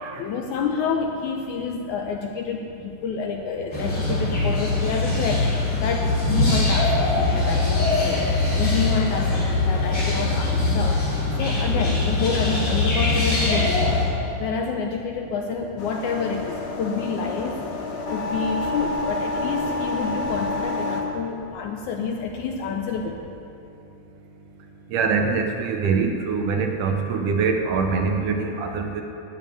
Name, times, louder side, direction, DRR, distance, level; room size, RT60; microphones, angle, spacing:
voice 1, 0.2-5.5 5.8-8.3 8.5-11.0 11.4-14.1 14.4-23.2, left 5 dB, 75° left, 3 dB, 1.9 m, -28 dB
sound 1, 3.7-14.0, left 2 dB, 35° left, 4.6 m, -22 dB
sound 2, 15.8-21.0, left 2 dB, 55° left, 1.5 m, -29 dB
voice 2, 24.9-29.0, right 5 dB, 75° right, 3 dB, 2.2 m, -24 dB
13.0 x 7.3 x 9.6 m, 2.8 s
omnidirectional pair, 4.1 m